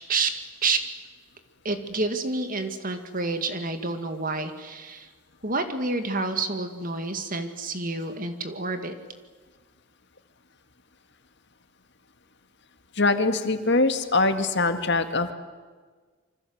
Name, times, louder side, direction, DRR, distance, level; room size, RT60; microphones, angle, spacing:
voice 1, 1.6-5.1 5.4-8.9, right 3 dB, 40° right, 8 dB, 2.2 m, -28 dB
voice 2, 13.0-15.3, left 3 dB, 55° left, 8 dB, 2.0 m, -23 dB
27.0 x 25.0 x 8.0 m, 1.5 s
head